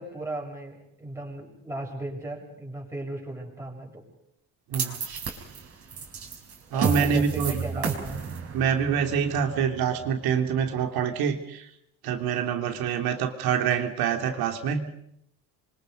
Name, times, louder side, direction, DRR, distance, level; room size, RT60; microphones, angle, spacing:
voice 1, 0.0-4.0 6.7-8.2, right 1 dB, 5° right, -1 dB, 7.3 m, -36 dB
sound 1, 4.7-11.0, right 6 dB, 40° right, 5.0 m, -33 dB
voice 2, 6.7-7.6 8.5-11.7 12.0-14.9, right 7 dB, 70° right, 5 dB, 3.2 m, -26 dB
28.5 x 24.5 x 5.3 m, 0.75 s
cardioid pair, 130°, 38 cm